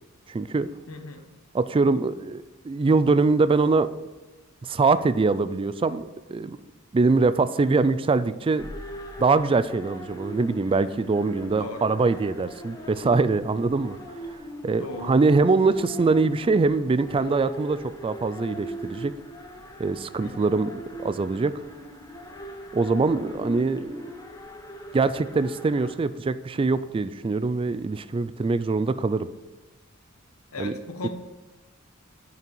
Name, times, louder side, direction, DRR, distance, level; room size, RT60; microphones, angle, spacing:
voice 1, 0.3-0.7 1.5-3.9 4.6-6.6 6.9-8.7 9.2-14.0 14.6-19.1 19.8-21.5 22.7-24.2 24.9-29.3 30.6-30.7, right 3 dB, 25° right, 14 dB, 0.3 m, -23 dB
voice 2, 0.9-1.3 11.6-11.9 14.7-15.1 20.2-20.5 30.5-31.1, left 2 dB, 85° left, 5 dB, 1.1 m, -37 dB
sound 1, 8.6-26.0, equal, 15° left, 0.9 m, -40 dB
9.1 x 5.7 x 4.6 m, 1.2 s
head